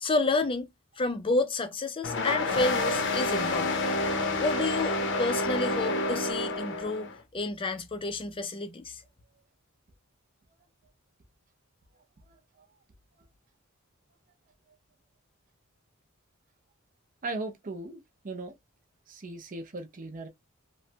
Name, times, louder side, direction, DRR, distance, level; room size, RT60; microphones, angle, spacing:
voice 1, 0.0-0.7 1.0-3.8 4.4-9.0, left 2 dB, 25° left, 0.4 m, -30 dB
sound 1, 2.0-7.1, left 2 dB, 60° left, 0.7 m, -29 dB
voice 2, 12.3-12.7 17.2-18.6 19.1-20.3, right 2 dB, 40° right, 0.6 m, -38 dB
3.0 x 2.2 x 2.7 m
head